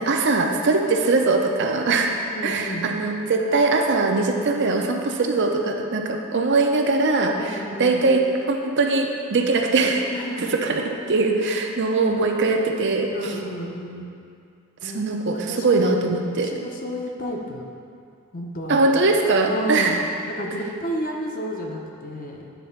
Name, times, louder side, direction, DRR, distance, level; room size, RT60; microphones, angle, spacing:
voice 1, 0.0-2.1 2.4-10.1 10.4-13.3 14.8-16.5 18.7-20.0, right 3 dB, 55° right, 2 dB, 0.6 m, -21 dB
voice 2, 2.3-2.9 7.4-8.1 10.1-10.6 13.1-14.1 14.8-15.0 15.5-15.9 16.4-17.6 18.3-18.8 19.5-20.0 20.3-22.4, equal, 40° left, 0 dB, 0.9 m, -31 dB
9.5 x 4.2 x 5.7 m, 2.4 s
head